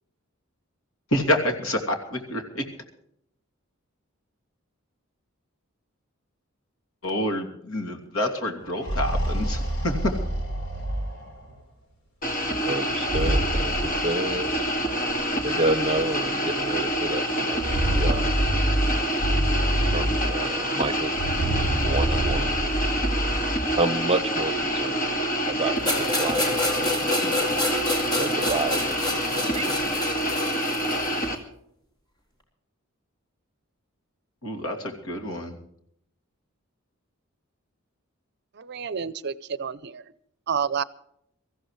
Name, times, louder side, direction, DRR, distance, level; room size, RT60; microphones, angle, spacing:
voice 1, 1.1-2.7 7.0-10.1 34.4-35.6, left 1 dB, 85° left, 4 dB, 2.8 m, -27 dB
sound 1, 8.6-11.5 12.9-14.6 15.6-15.7 16.0-16.1 17.4-20.5 21.1-23.7, right 1 dB, 55° left, 4.0 m, -27 dB
sound 2, 12.2-31.4, equal, 40° left, 2.1 m, -27 dB
voice 2, 12.7-14.5 15.4-18.3 19.9-21.1 21.8-22.5 23.8-25.1 25.5-27.5 28.2-29.9, right 2 dB, 30° right, 13 dB, 1.0 m, -29 dB
sound 3, 25.8-31.2, left 1 dB, 20° left, 3.8 m, -28 dB
voice 3, 38.6-40.0 40.5-40.8, right 6 dB, 50° right, 17 dB, 0.6 m, -29 dB
23.5 x 14.5 x 3.2 m, 0.74 s
head